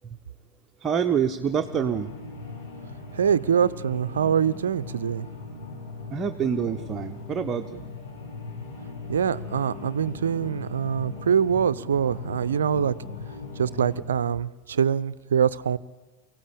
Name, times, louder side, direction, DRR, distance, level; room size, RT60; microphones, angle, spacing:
voice 1, 0.8-2.1 6.1-7.8, right 7 dB, 20° right, 5 dB, 0.9 m, -26 dB
sound 1, 1.4-14.0, left 3 dB, 50° left, 4.6 m, -39 dB
voice 2, 3.1-5.3 9.1-12.9 13.6-15.8, right 8 dB, 65° right, 16 dB, 0.6 m, -24 dB
23.5 x 16.5 x 8.6 m, 1.2 s
figure-of-eight pair, 90°, 0 cm